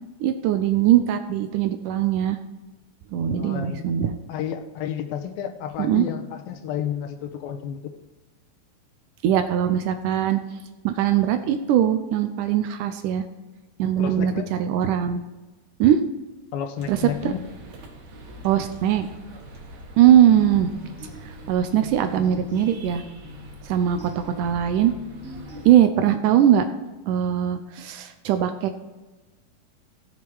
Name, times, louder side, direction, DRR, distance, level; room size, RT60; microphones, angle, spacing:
voice 1, 0.2-2.4 3.1-4.1 5.8-6.1 9.2-10.4 10.8-13.2 13.8-15.2 15.8-16.0 16.9-17.0 17.2-17.4 18.4-19.1 20.0-20.7 21.5-23.0 23.6-24.9 25.7-26.6 27.1-28.7, right 10 dB, 75° right, 8 dB, 2.0 m, -20 dB
voice 2, 3.3-3.8 4.3-7.9 14.0-14.5 16.5-17.5, left 9 dB, 80° left, 7 dB, 2.6 m, -31 dB
sound 1, 16.8-25.7, right 1 dB, 60° right, 3.0 m, -44 dB
sound 2, 20.2-26.2, left 3 dB, 40° left, 6.1 m, -43 dB
16.0 x 7.5 x 4.7 m, 1.2 s
omnidirectional pair, 4.3 m